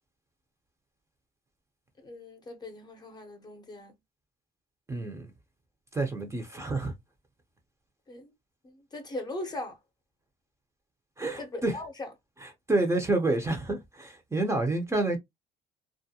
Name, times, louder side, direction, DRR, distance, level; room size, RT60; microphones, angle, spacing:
voice 1, 2.0-3.9 8.1-8.3 8.6-9.8 11.4-12.1, left 2 dB, 25° left, 0.8 m, -39 dB
voice 2, 4.9-5.3 5.9-6.9 11.2-11.8 12.4-15.2, right 2 dB, 15° right, 0.7 m, -28 dB
2.4 x 2.1 x 2.7 m
cardioid pair, 110°, 17 cm